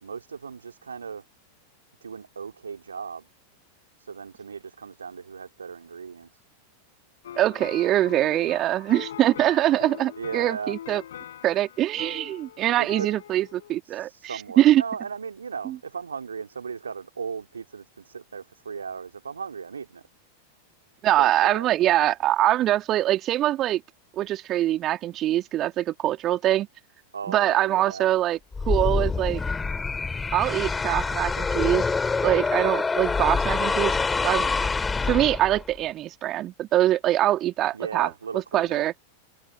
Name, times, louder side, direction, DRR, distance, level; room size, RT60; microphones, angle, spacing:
voice 1, 0.0-1.2 2.0-3.3 4.0-6.4 10.2-10.7 12.6-13.1 13.8-20.0 21.2-21.7 27.1-28.1 37.7-38.9, right 6 dB, 70° right, 2.9 m, -36 dB
sound 1, 7.2-13.8, left 10 dB, 60° left, 6.1 m, -42 dB
voice 2, 7.4-11.0 11.4-14.8 15.6-15.8 21.0-23.8 24.2-26.7 27.3-28.4 28.7-29.4 30.3-31.8 32.2-34.0 34.2-34.5 35.0-38.1 38.5-38.9, right 13 dB, 35° right, 3.0 m, -23 dB
sound 2, 28.5-35.8, left 4 dB, 15° left, 3.5 m, -26 dB
figure-of-eight pair, 90°, 0 cm